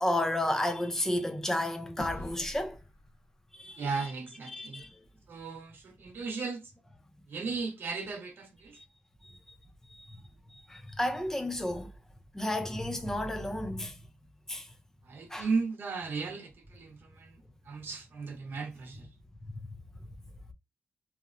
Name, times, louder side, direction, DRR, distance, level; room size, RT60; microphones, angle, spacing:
voice 1, 0.0-2.8 3.5-3.8 4.5-4.9 9.2-9.6 9.9-10.2 10.5-11.9 12.3-14.0 14.5-14.7 15.3-15.5 19.4-19.7, left 1 dB, 10° left, 0.5 m, -32 dB
sound 1, 2.0-4.6, left 1 dB, 70° left, 0.8 m, -46 dB
voice 2, 3.8-4.8 5.3-6.7 7.3-8.8 15.0-19.1, right 4 dB, 70° right, 0.6 m, -36 dB
2.9 x 2.0 x 2.4 m
wide cardioid pair, 130°, 4 cm